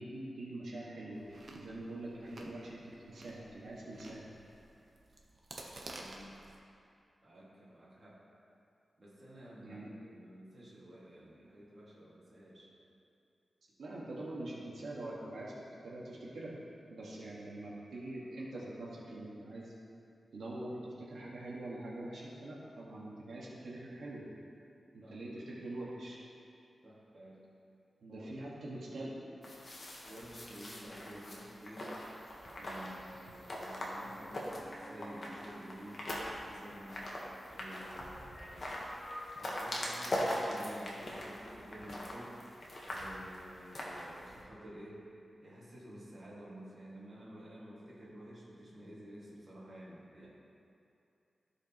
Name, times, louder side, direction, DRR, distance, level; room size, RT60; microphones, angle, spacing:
voice 1, 0.0-4.3 9.6-9.9 13.8-15.5 15.8-16.6 16.9-19.7 20.3-24.3 24.9-26.2 28.0-29.1, right 1 dB, 90° right, -6 dB, 1.6 m, -44 dB
Chewing mastication, 1.1-6.6, right 2 dB, 50° right, 0.8 m, -52 dB
voice 2, 5.9-6.2 7.2-8.2 9.0-12.7 16.9-17.1 25.0-25.2 26.8-27.4 28.1-29.1 30.0-32.3 32.6-36.1 36.4-37.0 37.5-39.0 39.4-42.4 42.9-45.1 45.4-50.3, equal, 30° right, -8 dB, 2.0 m, -51 dB
sound 1, 29.4-44.4, left 1 dB, 40° left, 1.2 m, -42 dB
sound 2, 32.1-41.6, equal, 20° left, 2.1 m, -54 dB
15.0 x 5.1 x 3.0 m, 2.6 s
wide cardioid pair, 165°, 0 cm